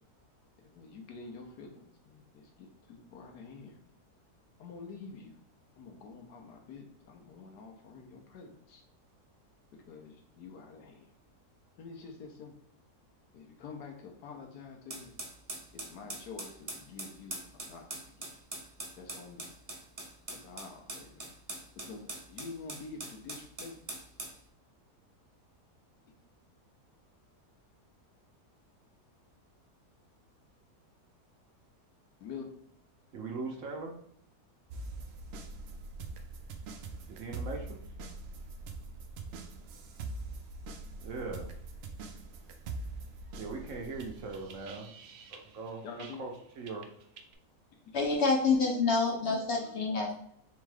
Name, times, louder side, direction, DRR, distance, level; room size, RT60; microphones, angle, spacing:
voice 1, 0.7-3.8 4.6-5.3 5.8-8.8 9.7-11.1 11.8-12.5 13.3-15.2 15.7-18.3 19.0-19.5 20.3-21.3 21.8-23.8 32.2-32.5 45.8-46.2 47.8-48.0, left 4 dB, 85° left, 1.4 m, -47 dB
sound 1, 14.9-24.4, right 2 dB, 30° right, 0.7 m, -43 dB
voice 2, 33.1-34.0 37.1-37.8 41.0-41.5 43.4-44.9 45.3-46.3 46.6-46.8, right 3 dB, 60° right, 0.9 m, -40 dB
sound 2, 34.7-46.4 46.7-47.3, right 3 dB, 85° right, 0.5 m, -43 dB
voice 3, 47.9-50.1, left 4 dB, 60° left, 0.7 m, -27 dB
3.6 x 3.5 x 3.3 m
omnidirectional pair, 1.7 m